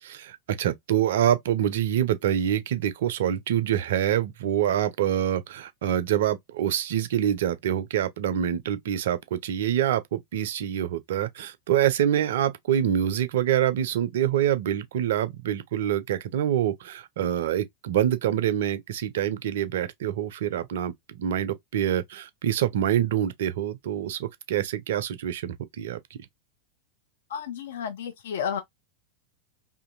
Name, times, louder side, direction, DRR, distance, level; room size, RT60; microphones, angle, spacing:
voice 1, 0.0-26.0, right 10 dB, 55° right, 0.4 m, -26 dB
voice 2, 27.3-28.6, left 8 dB, 60° left, 0.4 m, -32 dB
2.5 x 2.5 x 2.4 m
figure-of-eight pair, 90°, 0 cm